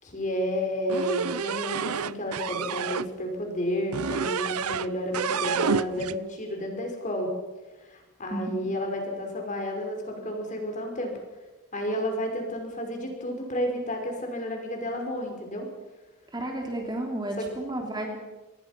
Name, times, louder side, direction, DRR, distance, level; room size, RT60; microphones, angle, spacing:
voice 1, 0.0-7.3 7.9-11.1 11.7-15.7 17.4-17.5, equal, 35° left, 2 dB, 5.6 m, -31 dB
sound 1, 0.9-3.1 3.9-4.9 5.1-6.2, right 6 dB, 85° right, 0.7 m, -29 dB
voice 2, 8.3-8.7 16.3-18.2, right 1 dB, 20° right, 2 dB, 3.0 m, -32 dB
26.5 x 20.5 x 6.0 m, 1.2 s
head